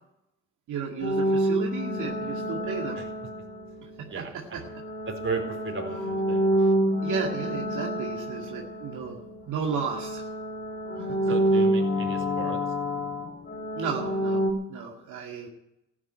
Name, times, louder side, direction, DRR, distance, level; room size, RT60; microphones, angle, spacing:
voice 1, 0.7-3.0 4.0-4.2 4.5-4.8 7.0-9.2 9.5-10.2 11.0-11.2 13.8-14.4 14.7-15.5, right 6 dB, 80° right, -1 dB, 2.2 m, -33 dB
sound 1, 1.0-3.9 4.6-9.4 9.7-14.5, equal, 45° left, 4.4 m, -28 dB
voice 2, 4.1-4.6 5.1-6.5 11.3-12.6, right 4 dB, 45° right, 3 dB, 4.3 m, -35 dB
15.0 x 10.0 x 9.4 m, 0.87 s
cardioid pair, 90°, 30 cm